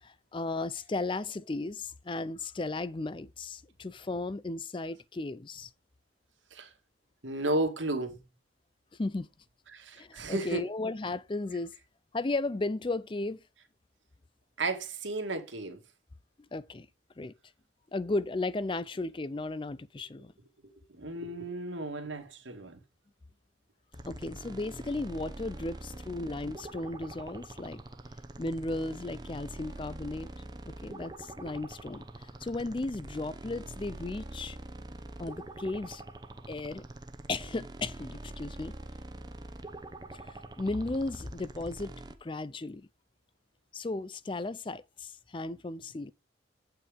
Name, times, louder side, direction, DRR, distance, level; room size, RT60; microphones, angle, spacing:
voice 1, 0.0-5.7 9.0-9.3 10.0-11.7 12.1-13.4 16.5-16.9 17.2-17.3 17.9-20.3 24.1-27.8 28.4-30.3 30.7-32.1 32.4-34.6 35.2-36.0 36.5-36.8 37.3-38.8 40.1-41.9 42.2-42.9 43.7-46.1, left 2 dB, 25° left, 0.4 m, -35 dB
voice 2, 7.2-8.2 9.7-10.7 14.6-15.8 20.6-22.8 31.4-31.5, right 2 dB, 80° right, 2.1 m, -34 dB
sound 1, 23.9-42.1, right 1 dB, 20° right, 0.8 m, -45 dB
8.7 x 5.7 x 5.1 m
head